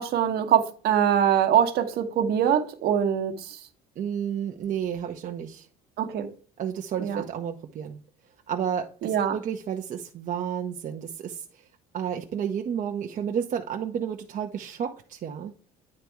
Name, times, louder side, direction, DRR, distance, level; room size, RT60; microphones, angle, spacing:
voice 1, 0.0-3.6 6.0-6.3 7.0-7.2 9.0-9.4, right 9 dB, 60° right, 1.2 m, -23 dB
voice 2, 4.0-5.7 6.6-8.0 8.5-11.7 11.9-15.5, right 8 dB, 45° right, 0.7 m, -31 dB
9.7 x 3.4 x 4.5 m
hypercardioid pair, 75°, 18 cm